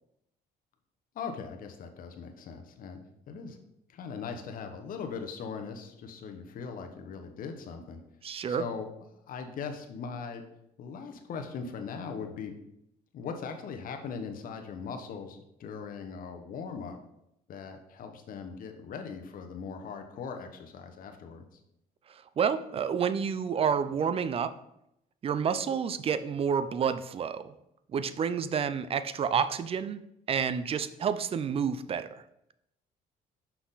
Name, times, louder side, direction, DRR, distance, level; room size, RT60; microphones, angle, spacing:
voice 1, 1.1-3.0 3.3-3.6 3.9-8.0 8.5-8.9 9.3-10.4 10.8-12.5 13.1-17.0 17.5-21.5, left 5 dB, 55° left, 5 dB, 1.0 m, -40 dB
voice 2, 8.2-8.6 22.1-24.5 25.2-27.6 27.9-30.0 30.3-32.2, right 7 dB, 35° right, 13 dB, 0.5 m, -29 dB
6.0 x 5.8 x 4.0 m, 0.81 s
cardioid pair, 110°, 17 cm